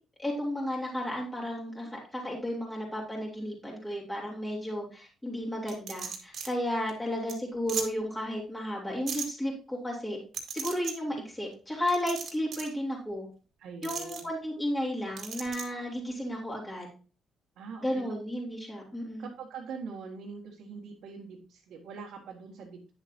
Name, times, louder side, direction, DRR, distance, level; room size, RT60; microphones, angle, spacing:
voice 1, 0.2-10.2 10.5-13.3 13.8-16.9 17.8-19.3, equal, 10° left, -2 dB, 3.6 m, -33 dB
sound 1, 5.7-6.5 6.9-7.0 7.3-7.4 7.7-7.9 9.1-9.3 10.3-10.9 11.9-12.7 13.8-14.2 15.2-15.6, right 6 dB, 65° right, 2.0 m, -36 dB
voice 2, 13.6-14.2 17.6-18.0 19.2-22.9, right 5 dB, 85° right, -4 dB, 1.9 m, -43 dB
9.8 x 7.0 x 2.8 m, 0.36 s
cardioid pair, 90°, 0 cm